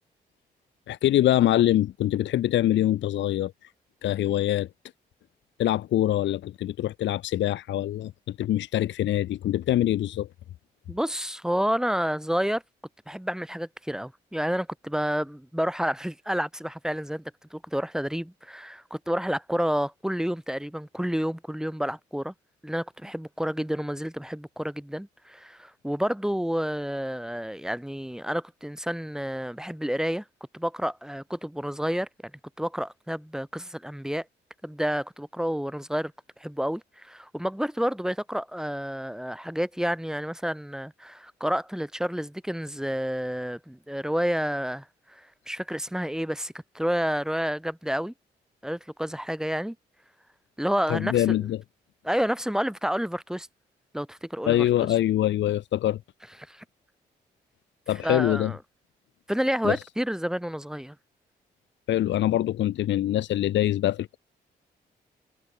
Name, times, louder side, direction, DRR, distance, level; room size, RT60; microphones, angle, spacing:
voice 1, 0.9-3.5 4.0-4.7 5.6-10.3 50.9-51.6 54.4-56.0 57.9-58.5 59.6-59.8 61.9-64.2, left 13 dB, 75° left, 0.8 m, -24 dB
voice 2, 10.9-12.6 13.1-17.2 17.5-22.3 22.6-30.2 30.5-32.1 32.6-34.2 34.6-36.1 36.4-44.8 45.1-48.1 48.6-49.7 50.6-51.4 52.0-53.5 53.9-54.6 56.5-56.6 58.0-58.6 59.3-60.9, equal, 5° right, 3.0 m, -29 dB
supercardioid pair, 55°, 19 cm